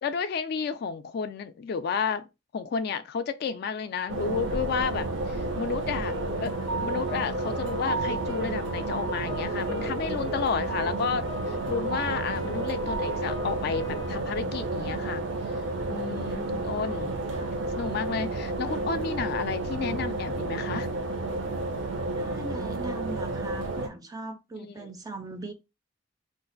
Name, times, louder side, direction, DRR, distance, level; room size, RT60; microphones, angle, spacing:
voice 1, 0.0-2.3 2.5-6.1 6.4-15.3 15.9-17.1 17.8-20.9 24.6-24.9, left 6 dB, 50° left, 0.3 m, -32 dB
sound 1, 4.1-23.9, right 2 dB, 65° right, 0.5 m, -31 dB
sound 2, 6.1-14.1, right 2 dB, 85° right, 1.4 m, -37 dB
voice 2, 22.2-25.5, right 2 dB, 20° right, 0.4 m, -39 dB
2.5 x 2.3 x 3.7 m
head